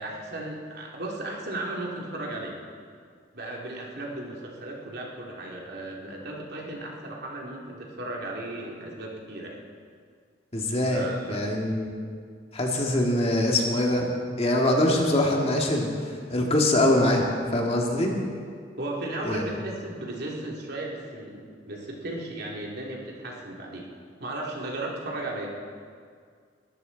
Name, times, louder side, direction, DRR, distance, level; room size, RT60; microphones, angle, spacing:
voice 1, 0.0-2.5 3.3-9.6 10.9-11.4 18.8-23.9 24.2-25.5, right 2 dB, 60° right, -2 dB, 2.7 m, -35 dB
voice 2, 10.5-11.0 11.3-11.9 12.5-14.1 14.4-15.9 16.3-17.3 17.5-18.1 19.2-19.4, left 1 dB, 35° left, 0 dB, 2.0 m, -23 dB
22.0 x 13.5 x 4.0 m, 2.1 s
head